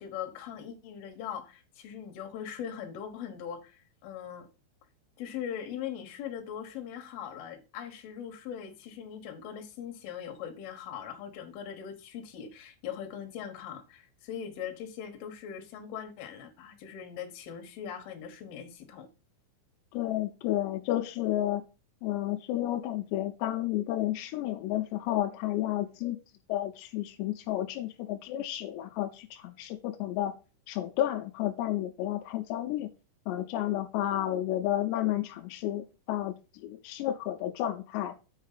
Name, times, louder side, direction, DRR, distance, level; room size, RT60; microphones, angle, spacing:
voice 1, 0.0-4.5 5.2-19.1, left 8 dB, 65° left, 2.6 m, -40 dB
voice 2, 19.9-21.6 22.0-26.2 26.5-30.3 30.7-32.9 33.3-38.2, left 13 dB, 90° left, 2.4 m, -31 dB
8.2 x 5.2 x 5.7 m
omnidirectional pair, 5.9 m